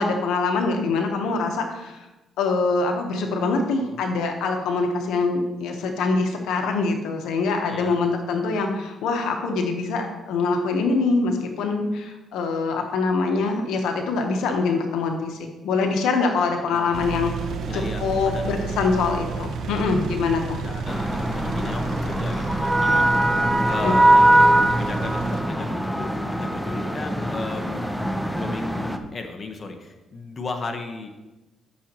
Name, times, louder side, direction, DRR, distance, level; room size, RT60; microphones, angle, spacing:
voice 1, 0.0-2.1 2.4-17.3 17.7-20.6 23.8-23.9, left 4 dB, 85° left, 4 dB, 1.0 m, -24 dB
voice 2, 16.6-16.9 17.6-18.6 20.5-23.4 23.7-24.3 24.7-27.9 28.3-31.1, left 3 dB, 40° left, 4 dB, 1.1 m, -35 dB
Engine, 16.9-25.4, right 5 dB, 70° right, 0.9 m, -32 dB
sound 1, 20.9-29.0, right 1 dB, ahead, 0.8 m, -21 dB
12.5 x 6.3 x 3.0 m, 1.1 s
cardioid pair, 90°, 0 cm